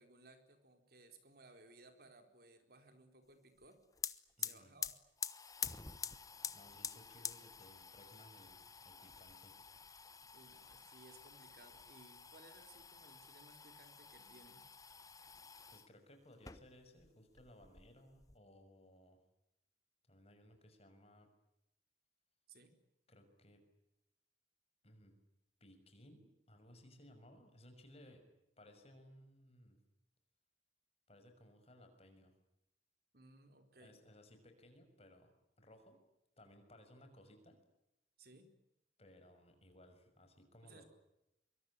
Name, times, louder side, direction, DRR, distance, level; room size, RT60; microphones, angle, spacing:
voice 1, 0.0-3.8 4.4-4.9 10.3-14.7 22.5-22.7 33.1-34.0 38.2-38.5 40.6-40.8, right 2 dB, 55° right, 7 dB, 4.3 m, -62 dB
sound 1, 3.6-3.7 3.9-15.9 16.3-17.1 17.4-18.4, left 6 dB, 20° left, 1.1 m, -48 dB
voice 2, 4.4-4.7 6.5-9.6 15.7-19.2 20.1-21.3 23.1-23.7 24.8-25.2 25.6-28.2 28.6-29.8 31.1-32.3 33.8-35.3 35.6-36.0 36.4-37.6 39.0-40.9, left 1 dB, 35° left, 6 dB, 6.2 m, -61 dB
25.0 x 24.0 x 10.0 m, 0.85 s
head